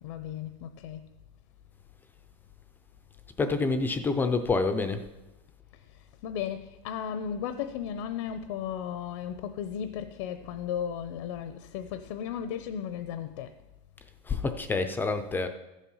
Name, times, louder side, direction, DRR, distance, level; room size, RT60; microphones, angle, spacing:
voice 1, 0.0-1.1 5.7-13.6, left 8 dB, 70° left, 0.7 m, -35 dB
voice 2, 3.4-5.0 14.3-15.5, left 3 dB, 10° left, 0.5 m, -27 dB
13.5 x 7.4 x 5.5 m
supercardioid pair, 160°, 16 cm